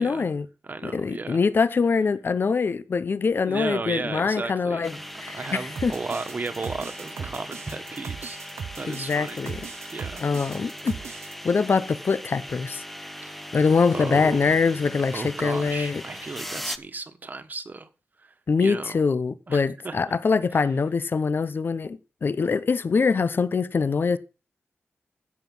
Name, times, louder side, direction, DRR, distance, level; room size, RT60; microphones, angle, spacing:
voice 1, 0.0-0.5 0.8-4.9 5.2-5.9 8.9-9.7 10.2-10.9 11.4-12.8 13.5-16.0 18.5-24.2, left 5 dB, 50° left, 0.8 m, -24 dB
voice 2, 0.6-1.4 3.4-8.4 8.8-9.4 9.9-10.2 13.2-13.4 13.9-14.5 15.1-17.9 18.2-18.3 18.6-19.0 19.5-20.1, right 3 dB, 40° right, 1.4 m, -34 dB
sound 1, 4.8-16.8, equal, 5° left, 0.8 m, -39 dB
sound 2, 5.8-11.3, right 7 dB, 85° right, 0.8 m, -38 dB
15.5 x 7.3 x 5.5 m
wide cardioid pair, 115°, 5 cm